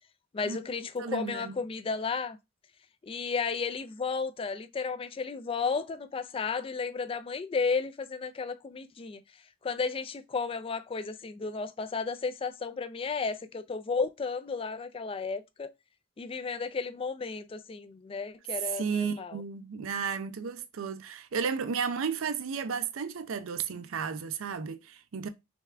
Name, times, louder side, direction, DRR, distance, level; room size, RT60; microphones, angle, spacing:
voice 1, 0.3-2.4 3.0-9.2 9.6-15.7 16.2-19.4, left 5 dB, 25° left, 0.3 m, -33 dB
voice 2, 1.0-1.6 18.7-25.3, right 6 dB, 75° right, 0.5 m, -33 dB
3.5 x 3.3 x 3.3 m
head